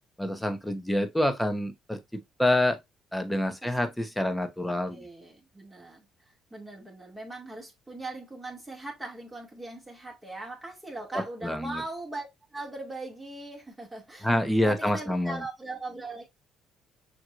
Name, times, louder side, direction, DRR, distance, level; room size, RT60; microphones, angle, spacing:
voice 1, 0.2-2.8 3.1-5.0 11.4-11.8 14.2-15.4, left 1 dB, 5° left, 1.0 m, -27 dB
voice 2, 4.6-14.3 14.6-16.2, right 2 dB, 10° right, 2.2 m, -40 dB
5.8 x 3.0 x 2.5 m
cardioid pair, 90°, 0 cm